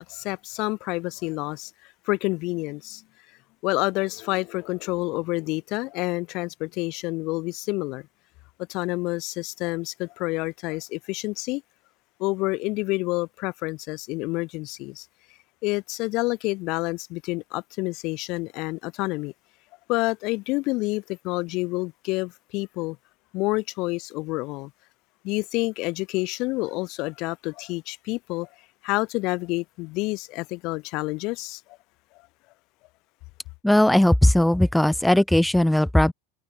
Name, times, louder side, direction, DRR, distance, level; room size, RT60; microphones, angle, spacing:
voice 1, 0.0-1.7 2.1-3.0 3.6-8.0 8.7-11.6 12.2-15.0 15.6-19.3 19.9-23.0 23.3-24.7 25.2-28.5 28.8-31.6, left 23 dB, 50° left, 1.6 m, -28 dB
voice 2, 33.6-36.1, left 1 dB, 5° left, 0.7 m, -18 dB
supercardioid pair, 145°, 0 cm